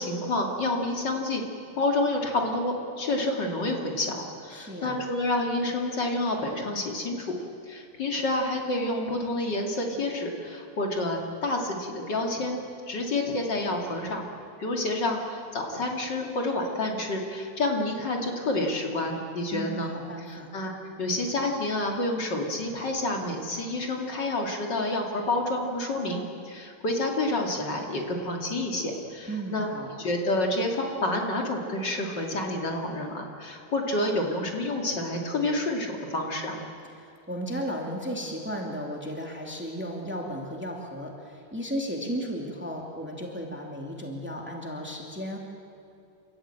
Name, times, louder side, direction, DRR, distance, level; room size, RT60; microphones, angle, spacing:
voice 1, 0.0-1.5 1.7-7.3 7.7-12.6 12.9-14.2 14.6-19.9 20.3-29.7 30.0-36.6, left 2 dB, 60° left, 1 dB, 3.0 m, -29 dB
voice 2, 4.5-5.0 19.5-20.5 29.2-29.9 37.0-45.4, equal, 5° right, 0 dB, 2.5 m, -35 dB
30.0 x 14.0 x 8.8 m, 2.6 s
omnidirectional pair, 2.2 m